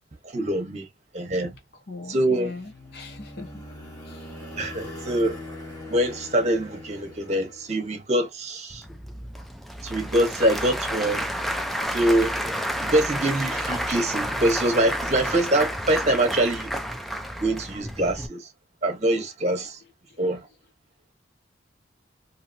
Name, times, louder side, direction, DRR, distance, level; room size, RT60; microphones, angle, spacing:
voice 1, 0.3-0.8 1.1-1.5 2.1-2.5 4.6-5.4 5.9-8.8 9.8-11.3 11.9-12.3 12.8-16.7 17.4-18.5 18.8-19.8 20.2-20.4, right 1 dB, 35° right, 1.1 m, -24 dB
voice 2, 1.9-3.5 4.0-4.3 20.1-20.2, left 3 dB, 55° left, 0.8 m, -40 dB
sound 1, 2.3-8.1, left 1 dB, 20° left, 1.2 m, -41 dB
Applause / Crowd, 8.7-18.3, equal, ahead, 0.3 m, -30 dB
2.8 x 2.8 x 2.6 m
head